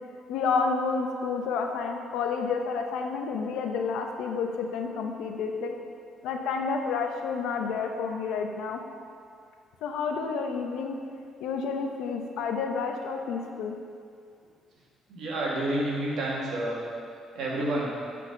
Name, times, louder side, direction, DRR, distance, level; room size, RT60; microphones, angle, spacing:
voice 1, 0.3-5.7 6.2-8.8 9.8-11.0 11.4-13.7, left 5 dB, 85° left, 3 dB, 0.7 m, -30 dB
voice 2, 15.1-16.8 17.3-17.9, right 1 dB, 75° right, -4 dB, 1.8 m, -29 dB
8.3 x 4.2 x 5.3 m, 2.3 s
cardioid pair, 125°, 0 cm